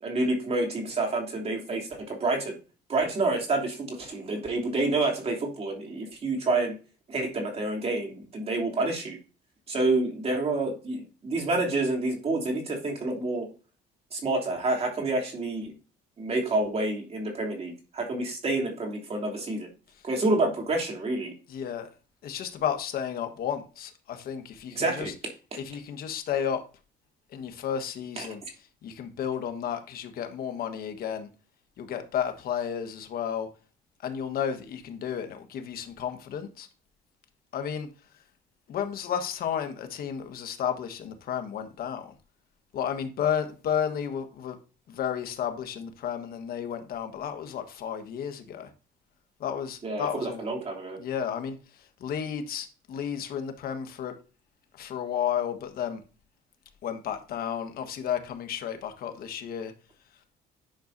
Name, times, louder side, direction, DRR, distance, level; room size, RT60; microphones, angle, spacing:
voice 1, 0.0-2.5 2.9-6.7 7.1-9.2 9.7-13.5 14.1-15.7 16.2-19.7 20.0-21.3 24.7-25.1 28.2-28.3 49.8-51.0, right 2 dB, 35° right, 3.0 m, -28 dB
voice 2, 21.5-21.9 22.2-25.1 25.5-26.6 27.3-28.4 28.8-31.3 31.8-33.5 34.0-36.7 37.5-37.9 38.7-42.1 42.7-44.6 44.9-48.7 49.4-50.4 51.0-54.1 54.7-56.0 56.8-59.7, left 8 dB, 65° left, 1.4 m, -32 dB
10.5 x 6.3 x 2.7 m
cardioid pair, 110°, 17 cm